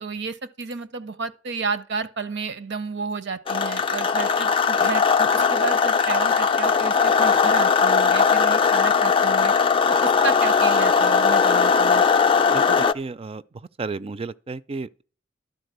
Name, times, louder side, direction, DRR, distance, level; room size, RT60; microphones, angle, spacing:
voice 1, 0.0-9.5 9.9-12.1, right 4 dB, 60° right, 0.8 m, -31 dB
sound 1, 3.5-12.9, left 6 dB, 25° left, 0.4 m, -19 dB
voice 2, 12.5-15.0, right 4 dB, 30° right, 0.4 m, -33 dB
12.0 x 4.0 x 8.0 m
head